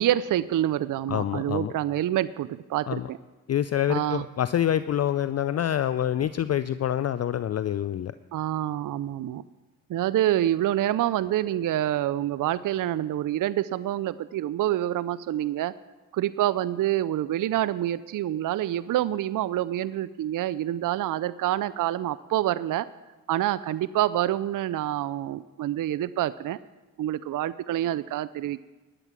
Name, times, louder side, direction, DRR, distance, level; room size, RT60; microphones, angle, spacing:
voice 1, 0.0-3.2 3.9-4.2 8.3-9.4 9.9-15.7 16.1-22.9 23.3-26.6 27.0-28.6, right 13 dB, 55° right, 16 dB, 0.5 m, -27 dB
voice 2, 1.1-1.7 2.9-3.0 3.5-8.1, left 10 dB, 40° left, 15 dB, 0.4 m, -26 dB
12.0 x 9.1 x 6.0 m, 1.2 s
hypercardioid pair, 40°, 40 cm